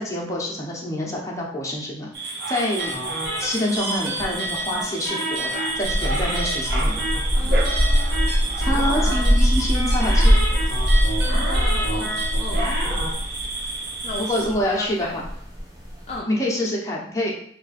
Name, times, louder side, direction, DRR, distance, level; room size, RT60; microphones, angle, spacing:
voice 1, 0.0-3.0 3.4-7.0 8.6-10.4 14.2-15.2 16.3-17.3, left 1 dB, 20° left, -3 dB, 0.8 m, -27 dB
sound 1, 2.1-14.5, right 3 dB, 60° right, 1.0 m, -31 dB
sound 2, 2.8-13.1, right 1 dB, 85° right, 1.3 m, -30 dB
sound 3, 5.8-16.2, equal, 20° right, 0.8 m, -22 dB
voice 2, 7.3-8.5 11.2-12.1 12.4-12.6 14.0-15.2 16.1-16.3, left 2 dB, 40° left, -2 dB, 0.4 m, -35 dB
3.5 x 2.5 x 4.1 m, 0.67 s
head